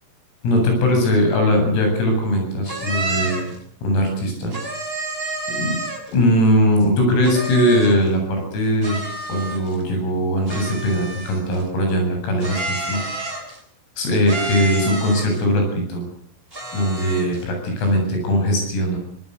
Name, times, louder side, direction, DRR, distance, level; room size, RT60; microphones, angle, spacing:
voice 1, 0.4-3.5 3.8-4.5 5.6-5.8 6.1-9.0 9.3-13.3 14.0-16.0 16.7-19.0, equal, 85° left, 3 dB, 10.5 m, -20 dB
sound 1, 2.7-3.6 4.5-6.1 7.2-8.1 8.8-9.8 10.5-11.6 12.4-13.6 14.3-15.4 16.5-17.4, right 2 dB, 10° right, 6.1 m, -29 dB
25.0 x 19.5 x 8.0 m, 0.63 s
omnidirectional pair, 6.0 m